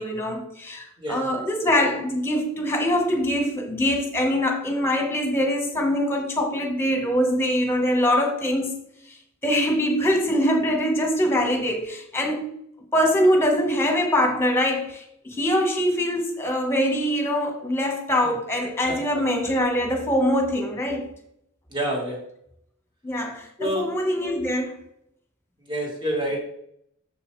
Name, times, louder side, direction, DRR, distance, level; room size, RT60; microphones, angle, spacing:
voice 1, 0.0-8.7 9.4-12.4 12.9-21.1 23.0-24.8 26.3-26.4, equal, 10° left, 2 dB, 1.4 m, -23 dB
voice 2, 21.7-22.2 23.6-23.9 25.7-26.4, right 1 dB, 20° right, -1 dB, 1.7 m, -27 dB
7.0 x 6.8 x 3.3 m, 0.73 s
head